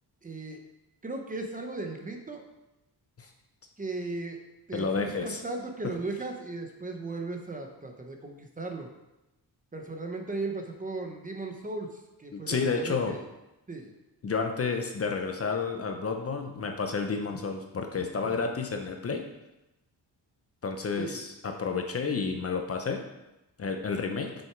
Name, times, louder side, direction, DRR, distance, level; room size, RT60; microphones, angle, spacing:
voice 1, 0.2-0.6 1.0-2.4 3.8-4.4 4.7-8.9 9.7-13.2 13.7-13.9 21.0-21.2, right 3 dB, 20° right, 3 dB, 0.9 m, -37 dB
voice 2, 4.7-5.4 5.8-5.9 12.3-13.2 14.2-19.2 20.6-23.0 23.6-24.3, left 5 dB, 35° left, 4 dB, 0.8 m, -30 dB
7.9 x 6.5 x 4.6 m, 0.95 s
wide cardioid pair, 170°, 39 cm